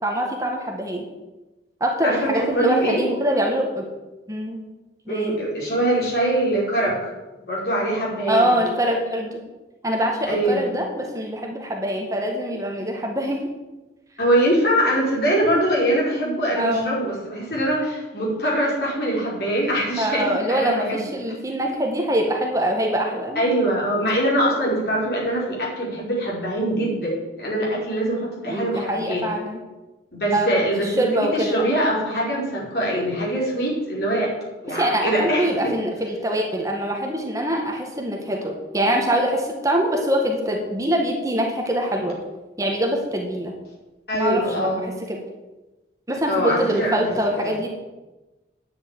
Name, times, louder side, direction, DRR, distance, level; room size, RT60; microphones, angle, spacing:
voice 1, 0.0-1.1 1.8-3.9 4.3-4.6 5.1-5.4 8.3-9.4 9.8-13.4 16.6-17.0 20.0-23.4 28.5-29.6 30.3-31.5 34.7-42.2 42.6-43.6 44.1-45.2 46.1-47.7, right 1 dB, 20° right, 0 dB, 1.7 m, -24 dB
voice 2, 2.0-3.0 5.1-7.1 7.5-8.6 10.3-10.7 14.2-21.0 23.4-29.2 30.1-34.3 34.6-35.7 44.1-44.9 46.3-47.2, right 1 dB, 65° left, -4 dB, 5.2 m, -23 dB
10.0 x 7.4 x 9.1 m, 1.1 s
head